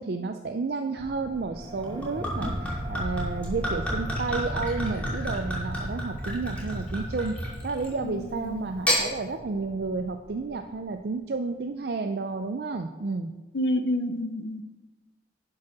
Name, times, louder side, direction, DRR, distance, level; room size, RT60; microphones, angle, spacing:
voice 1, 0.0-7.4 7.6-13.3, right 4 dB, 60° right, 6 dB, 0.4 m, -31 dB
sound 1, 1.0-11.2, equal, 25° right, 1.4 m, -39 dB
Gurgling / Chink clink / Liquid, 1.8-8.0 8.7-9.1, equal, 10° left, 2.6 m, -31 dB
voice 2, 8.0-8.7 13.5-14.6, left 1 dB, 75° left, 9 dB, 0.7 m, -29 dB
10.5 x 4.8 x 5.9 m, 1.2 s
head